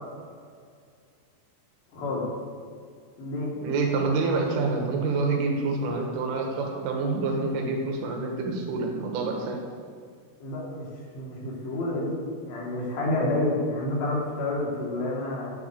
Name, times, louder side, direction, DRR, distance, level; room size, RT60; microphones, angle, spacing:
voice 1, 1.9-2.3 3.2-3.5 10.4-10.9 11.1-12.2 12.5-15.5, left 2 dB, 65° left, -4 dB, 4.8 m, -29 dB
voice 2, 3.6-9.6, right 3 dB, 80° right, 1 dB, 4.1 m, -27 dB
10.0 x 7.2 x 8.1 m, 2.1 s
omnidirectional pair, 5.6 m